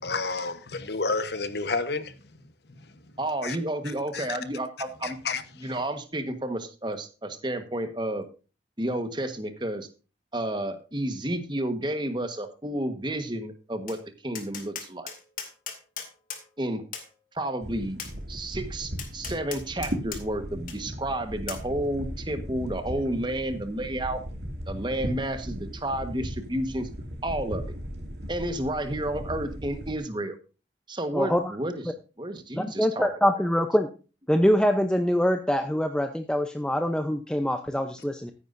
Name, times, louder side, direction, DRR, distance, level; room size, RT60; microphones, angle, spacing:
voice 1, 0.0-2.2 2.7-2.9 3.4-3.6 3.8-4.4 5.0-5.7, left 3 dB, 65° left, 1.1 m, -31 dB
voice 2, 3.2-5.2 5.6-8.3 8.8-9.9 10.3-14.0 14.2-15.1 16.6-16.8 17.3-18.0 18.3-24.2 24.7-26.9 27.2-27.8 28.3-30.4 30.9-31.8 32.2-33.1, right 1 dB, 25° right, 1.3 m, -31 dB
Tap, 13.9-14.0 14.3-16.4 16.9-17.1 18.0-18.1 19.0-20.2 20.7-20.8 21.5-21.6, left 7 dB, 45° left, 2.3 m, -37 dB
sound 1, 17.6-30.0, equal, 70° right, 2.3 m, -37 dB
voice 3, 31.1-31.6 32.5-33.9 34.3-38.3, equal, 5° left, 0.6 m, -24 dB
15.0 x 9.7 x 2.6 m
head